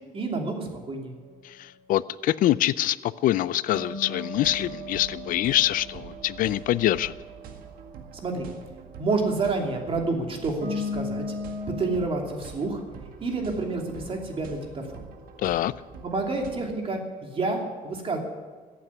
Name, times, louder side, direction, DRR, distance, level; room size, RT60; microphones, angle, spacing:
voice 1, 0.1-1.1 8.2-8.5 9.0-11.2 11.7-12.8 13.2-15.0 16.0-18.2, right 3 dB, 40° right, 2 dB, 2.9 m, -29 dB
voice 2, 1.4-7.1 15.4-15.7, left 14 dB, 70° left, 18 dB, 0.5 m, -25 dB
sound 1, 3.8-7.9 10.6-12.1, left 2 dB, 65° right, 5.1 m, -36 dB
sound 2, 4.3-16.5, right 5 dB, 80° right, 1.9 m, -45 dB
14.5 x 8.4 x 9.8 m, 1.5 s
cardioid pair, 115°, 15 cm